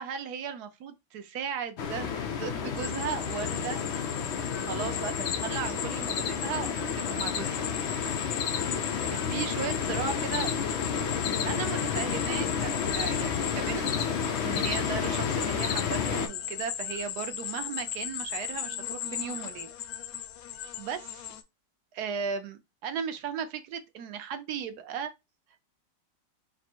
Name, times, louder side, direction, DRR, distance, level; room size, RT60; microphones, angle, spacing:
voice 1, 0.0-3.8 4.6-7.6 9.1-10.5 11.4-14.1 14.4-19.7 20.8-21.3 21.9-25.1, right 7 dB, 70° right, 1.1 m, -36 dB
sound 1, 1.8-16.3, left 6 dB, 90° left, 0.6 m, -31 dB
sound 2, 2.8-21.4, left 10 dB, 70° left, 0.9 m, -38 dB
4.1 x 2.1 x 4.4 m
omnidirectional pair, 1.9 m